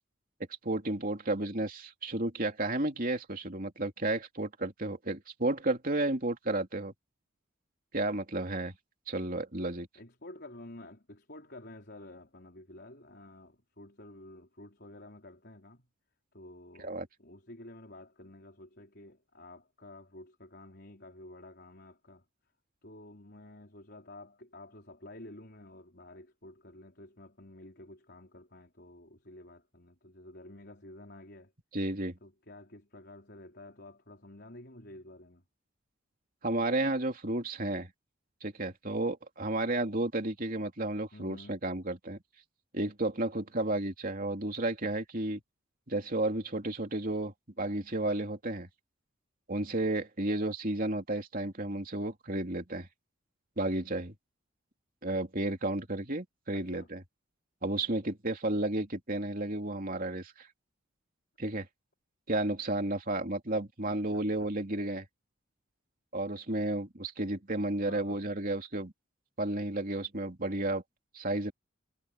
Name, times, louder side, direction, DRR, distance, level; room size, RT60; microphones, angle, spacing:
voice 1, 0.6-6.9 7.9-8.7 9.1-9.9 16.8-17.1 31.7-32.2 36.4-37.9 38.4-42.2 42.7-45.4 45.9-48.7 49.5-52.9 53.6-54.1 55.0-57.0 57.6-60.5 61.4-61.7 62.3-65.0 66.1-68.9 69.4-70.8 71.1-71.5, right 2 dB, 45° right, 3.0 m, -32 dB
voice 2, 9.9-15.9 16.3-22.2 22.8-31.5 32.2-35.4 41.1-41.6 56.5-56.9 63.8-64.5 67.8-68.3, left 1 dB, 50° left, 5.0 m, -51 dB
head